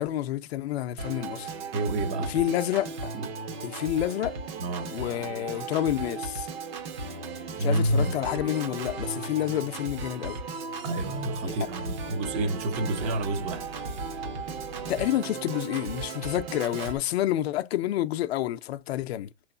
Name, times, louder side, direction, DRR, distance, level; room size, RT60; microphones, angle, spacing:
voice 1, 0.0-1.5 2.3-3.1 3.6-4.4 4.9-6.5 7.6-10.4 11.4-11.5 14.9-19.3, left 13 dB, 60° left, 0.5 m, -29 dB
Organ, 1.0-17.0, right 4 dB, 55° right, 1.1 m, -36 dB
voice 2, 1.7-2.4 3.1-3.3 4.6-5.0 7.6-8.2 10.8-13.7, right 1 dB, 20° right, 0.5 m, -28 dB
4.0 x 3.1 x 2.5 m
hypercardioid pair, 145°, 36 cm